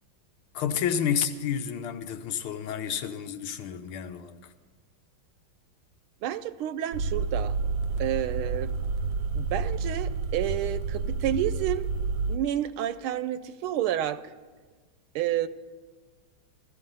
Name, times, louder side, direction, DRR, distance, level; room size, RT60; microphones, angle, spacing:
voice 1, 0.5-4.5, left 8 dB, 90° left, 1.7 m, -30 dB
voice 2, 6.2-7.5 8.0-8.7 9.3-11.9 12.3-14.2 15.1-15.5, right 11 dB, 90° right, 1.5 m, -30 dB
sound 1, 6.9-12.4, right 4 dB, 75° right, 1.2 m, -29 dB
15.5 x 14.0 x 5.4 m
omnidirectional pair, 2.3 m